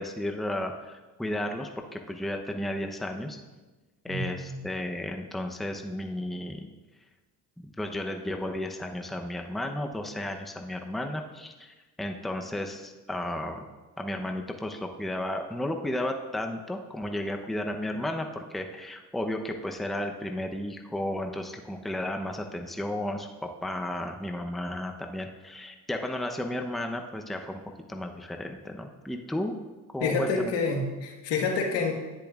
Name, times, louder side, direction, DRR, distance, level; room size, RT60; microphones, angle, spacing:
voice 1, 0.0-3.4 4.0-6.6 7.6-13.7 14.0-27.6 27.9-29.6 29.9-30.3, left 1 dB, ahead, 4 dB, 0.8 m, -33 dB
voice 2, 4.1-4.6 30.0-31.9, left 4 dB, 80° left, 1 dB, 1.6 m, -28 dB
10.5 x 9.9 x 2.5 m, 1.2 s
supercardioid pair, 80°, 43 cm